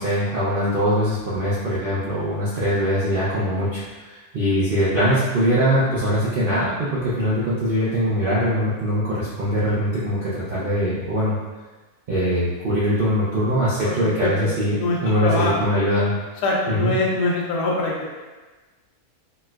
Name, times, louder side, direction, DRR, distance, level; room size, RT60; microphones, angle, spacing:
voice 1, 0.0-11.4 12.1-16.1 16.7-16.9, equal, 75° right, -9 dB, 0.5 m, -22 dB
voice 2, 13.8-15.7 16.4-18.1, left 2 dB, 85° left, -2 dB, 1.2 m, -24 dB
4.2 x 2.2 x 2.2 m, 1.2 s
omnidirectional pair, 1.7 m